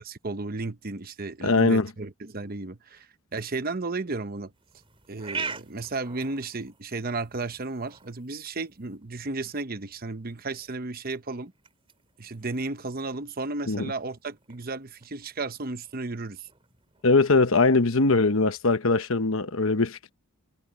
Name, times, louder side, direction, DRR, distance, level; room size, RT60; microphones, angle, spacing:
voice 1, 0.0-4.5 5.1-11.5 12.2-16.5, right 3 dB, 40° right, 0.9 m, -34 dB
voice 2, 1.4-1.9 13.7-13.9 17.0-20.1, left 3 dB, 65° left, 1.1 m, -21 dB
sound 1, 4.5-18.6, right 5 dB, 25° right, 4.7 m, -45 dB
head